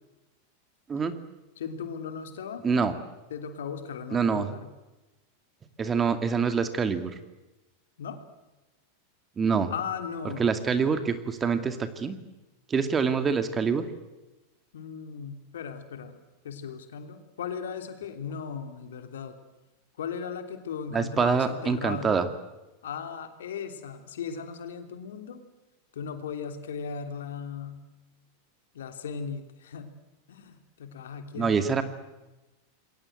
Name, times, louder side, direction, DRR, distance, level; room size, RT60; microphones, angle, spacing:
voice 1, 1.6-2.7 3.3-4.6 8.0-8.2 9.7-10.4 14.7-16.2 16.4-19.3 20.0-22.2 22.8-25.4 25.9-27.8 28.7-29.9 30.3-31.6, left 6 dB, 75° left, 7 dB, 3.2 m, -37 dB
voice 2, 2.6-2.9 4.1-4.5 5.8-7.1 9.4-9.7 10.4-12.2 12.7-13.9 20.9-22.3 31.3-31.8, right 5 dB, 25° right, 9 dB, 2.4 m, -25 dB
27.5 x 22.5 x 8.0 m, 1.0 s
hypercardioid pair, 95°, 0 cm